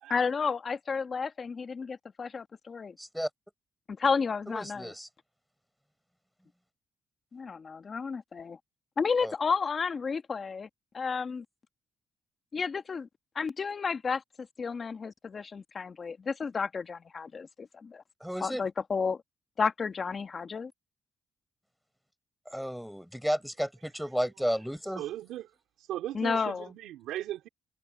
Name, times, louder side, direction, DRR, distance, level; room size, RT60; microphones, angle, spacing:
voice 1, 0.1-2.9 3.9-4.9 7.3-8.6 9.0-10.7 10.9-11.4 12.5-13.1 13.3-18.0 18.4-19.2 19.6-20.7 26.1-26.7, left 5 dB, 40° left, 1.6 m, -32 dB
voice 2, 3.0-3.3 4.5-5.1 9.2-9.3 18.2-18.6 22.5-25.0, equal, ahead, 4.6 m, -33 dB
voice 3, 25.0-25.4 25.8-27.5, right 13 dB, 90° right, 2.5 m, -37 dB
cardioid pair, 90°, 0 cm